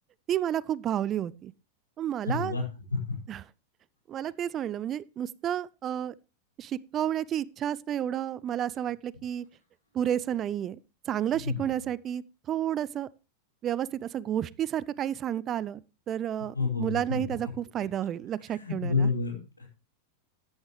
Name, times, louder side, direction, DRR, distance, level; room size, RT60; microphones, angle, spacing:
voice 1, 0.3-1.5 2.0-2.6 3.3-3.4 4.1-6.1 6.6-9.4 9.9-10.8 11.1-13.1 13.6-19.1, right 10 dB, 30° right, 0.5 m, -31 dB
voice 2, 2.3-2.6 3.1-3.2 11.4-11.6 16.5-17.2 18.5-19.7, left 4 dB, 80° left, 5.3 m, -29 dB
14.5 x 10.5 x 3.2 m
figure-of-eight pair, 90°, 0 cm